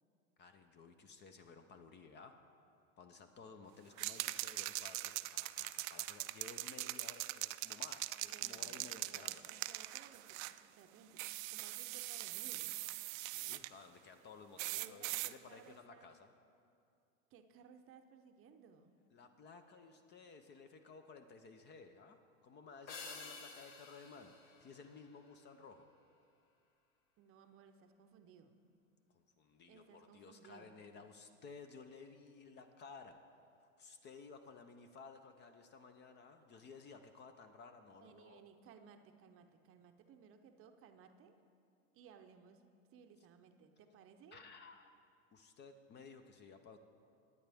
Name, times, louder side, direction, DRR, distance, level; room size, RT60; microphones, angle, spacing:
voice 1, 0.4-2.4 3.0-9.5 13.2-16.3 19.1-25.9 29.1-33.2 33.6-38.4 44.3-44.9 45.3-46.8, left 4 dB, 25° left, 8 dB, 0.5 m, -56 dB
sound 1, 4.0-10.6 11.2-13.7 14.6-15.3, right 18 dB, 75° right, 0.5 m, -42 dB
voice 2, 8.2-12.8 14.8-16.1 17.3-18.9 27.2-28.6 29.7-30.7 38.0-41.4 41.9-42.6 42.9-44.4, right 6 dB, 35° right, 6 dB, 0.7 m, -61 dB
sound 2, 22.9-25.5, left 4 dB, 65° left, 2.1 m, -52 dB
18.0 x 9.6 x 3.5 m, 2.4 s
supercardioid pair, 130°, 40 cm